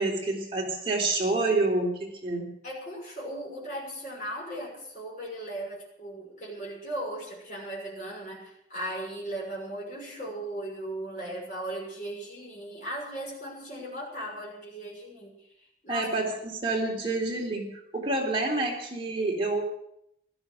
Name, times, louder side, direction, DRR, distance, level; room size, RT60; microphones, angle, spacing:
voice 1, 0.0-2.5 15.9-19.6, right 2 dB, 30° right, -2 dB, 3.5 m, -28 dB
voice 2, 2.6-15.3 15.8-16.1, right 1 dB, 45° left, -2 dB, 6.3 m, -37 dB
15.5 x 13.0 x 6.6 m, 0.74 s
head